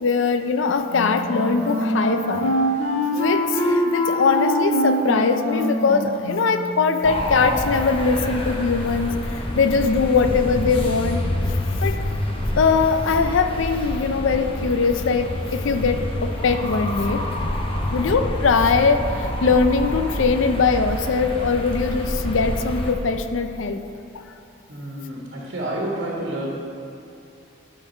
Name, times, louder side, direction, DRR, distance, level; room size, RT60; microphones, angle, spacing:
voice 1, 0.0-2.6 3.1-11.2 11.5-12.0 12.6-17.2 17.9-23.8, left 4 dB, 85° left, 7 dB, 0.5 m, -21 dB
Wind instrument woodwind instrument, 0.9-6.8, equal, 55° left, 1.6 m, -24 dB
sound 1, 7.0-22.9, left 1 dB, 30° left, 0.8 m, -27 dB
voice 2, 24.7-26.6, right 1 dB, 75° right, -3 dB, 1.3 m, -30 dB
11.0 x 3.9 x 6.3 m, 2.7 s
head